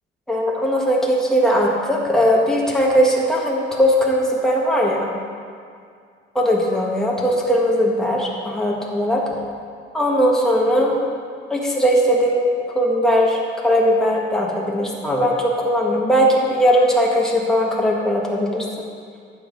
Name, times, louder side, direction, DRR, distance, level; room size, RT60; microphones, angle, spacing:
voice 1, 0.3-5.1 6.3-9.2 9.9-10.9 11.5-18.6, equal, 5° left, -3 dB, 1.5 m, -19 dB
11.5 x 7.3 x 4.0 m, 2.2 s
cardioid pair, 90°, 20 cm